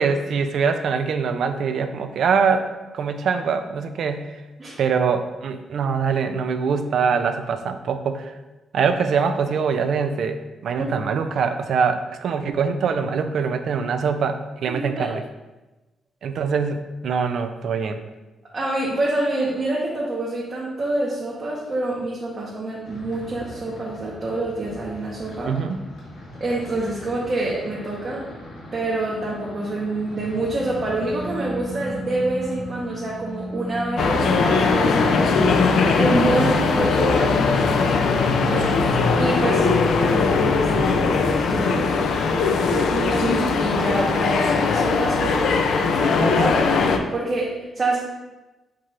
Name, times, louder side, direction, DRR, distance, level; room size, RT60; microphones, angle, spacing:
voice 1, 0.0-2.7 2.9-4.3 4.8-8.3 8.7-15.2 16.2-18.0 25.5-25.8 38.4-38.7, right 5 dB, 65° right, 8 dB, 0.4 m, -23 dB
voice 2, 14.7-15.1 18.5-25.5 26.4-28.3 28.7-35.4 35.7-37.7 38.5-39.7 40.0-41.9 42.9-45.5 45.8-48.0, right 2 dB, 35° right, -5 dB, 0.8 m, -26 dB
sound 1, 22.8-35.0, equal, 85° left, 1.4 m, -41 dB
sound 2, 30.6-35.6, equal, ahead, 0.6 m, -33 dB
sound 3, 34.0-47.0, left 4 dB, 70° left, 0.4 m, -20 dB
4.7 x 2.5 x 4.3 m, 1.1 s
cardioid pair, 130°, 0 cm